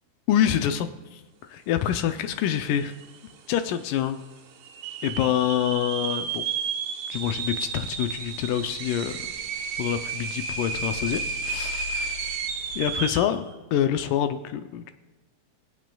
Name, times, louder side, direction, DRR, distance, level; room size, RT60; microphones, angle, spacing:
voice 1, 0.3-0.9 1.1-1.2 1.5-2.9 3.5-4.2 5.0-6.5 7.1-9.2 9.8-12.2 12.8-13.4 13.7-14.9, left 10 dB, 80° left, 8 dB, 1.9 m, -26 dB
sound 1, 2.4-2.5 2.7-3.3 3.8-3.9 4.6-13.4, right 6 dB, 85° right, 1.5 m, -32 dB
sound 2, 7.1-13.0, left 6 dB, 55° left, 2.7 m, -44 dB
24.0 x 8.3 x 2.3 m, 1.2 s
omnidirectional pair, 4.2 m